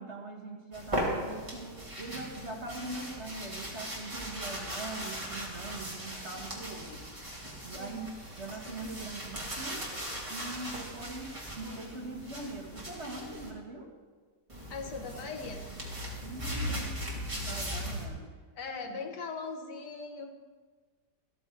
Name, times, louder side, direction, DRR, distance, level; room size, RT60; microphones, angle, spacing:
voice 1, 0.0-7.4 7.6-9.9 10.3-13.9 16.2-17.1 17.4-18.3 18.8-19.0, right 2 dB, 40° right, 0 dB, 1.9 m, -42 dB
sound 1, 0.7-13.5 14.5-18.1, equal, 20° right, 2.5 m, -38 dB
voice 2, 7.7-8.1 14.7-15.7 16.5-17.0 18.5-20.4, left 4 dB, 75° left, 4 dB, 1.8 m, -40 dB
14.0 x 14.0 x 3.9 m, 1.5 s
omnidirectional pair, 1.8 m